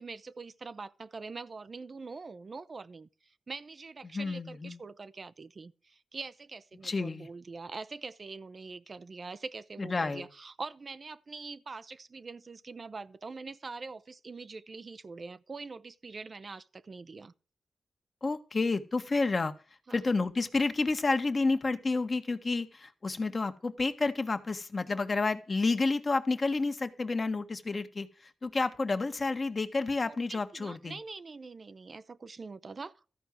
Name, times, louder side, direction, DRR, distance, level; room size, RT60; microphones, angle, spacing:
voice 1, 0.0-17.3 19.9-20.0 30.0-33.0, right 4 dB, 50° right, 0.6 m, -44 dB
voice 2, 4.0-4.8 6.8-7.3 9.8-10.2 18.2-19.5 19.9-31.0, left 3 dB, 45° left, 1.4 m, -30 dB
13.5 x 4.6 x 7.6 m
supercardioid pair, 45°, 0 cm